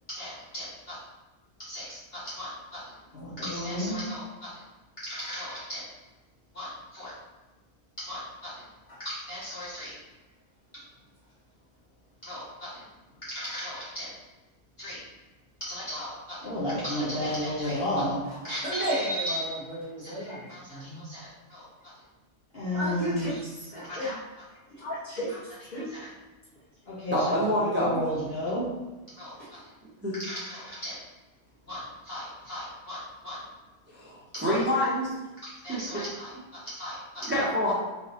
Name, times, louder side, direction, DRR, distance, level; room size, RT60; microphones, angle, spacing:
voice 1, 0.1-1.0 1.6-4.6 5.0-5.8 6.5-7.2 8.0-8.7 9.0-10.0 10.7-10.8 12.2-12.8 13.2-14.1 14.8-15.0 15.6-19.6 20.0-21.9 22.5-23.4 23.8-24.2 25.3-25.4 25.9-26.1 26.9-28.7 29.2-29.3 29.6-29.7 30.1-31.0 31.7-33.4 34.3-34.6 35.4-37.4, equal, 50° left, -8 dB, 1.1 m, -35 dB
voice 2, 18.6-21.1 22.7-24.1 24.7-25.3 25.7-25.9 27.3-27.4 29.4-29.5, equal, 30° left, -9 dB, 1.7 m, -34 dB
voice 3, 27.1-27.9 30.0-30.2 33.9-35.1 35.7-36.0 37.3-37.7, equal, 10° right, -7 dB, 0.7 m, -27 dB
4.2 x 3.8 x 2.9 m, 1.2 s
omnidirectional pair, 1.4 m